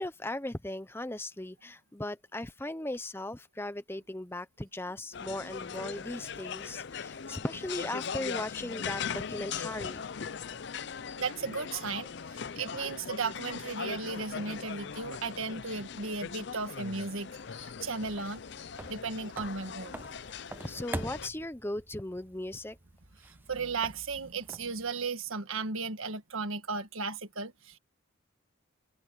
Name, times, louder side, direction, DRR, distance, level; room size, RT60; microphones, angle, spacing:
voice 1, 0.0-10.0 20.6-22.8, left 1 dB, 10° left, 0.8 m, -38 dB
sound 1, 5.1-21.3, left 6 dB, 55° left, 0.5 m, -40 dB
voice 2, 11.2-18.4 18.9-20.0 23.3-27.8, right 4 dB, 80° right, 1.6 m, -35 dB
sound 2, 17.2-24.9, right 1 dB, 10° right, 0.4 m, -46 dB
open air
head